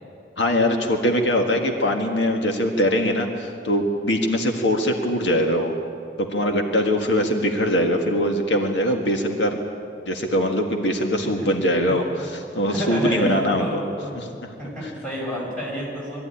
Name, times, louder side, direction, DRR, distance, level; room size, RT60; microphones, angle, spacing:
voice 1, 0.4-5.7 6.2-9.6 10.1-12.0 12.5-13.8 14.1-14.3, equal, 80° left, 3 dB, 1.7 m, -22 dB
voice 2, 12.7-14.1 14.6-16.3, equal, 5° left, -6 dB, 6.1 m, -30 dB
22.0 x 14.0 x 10.0 m, 2.6 s
head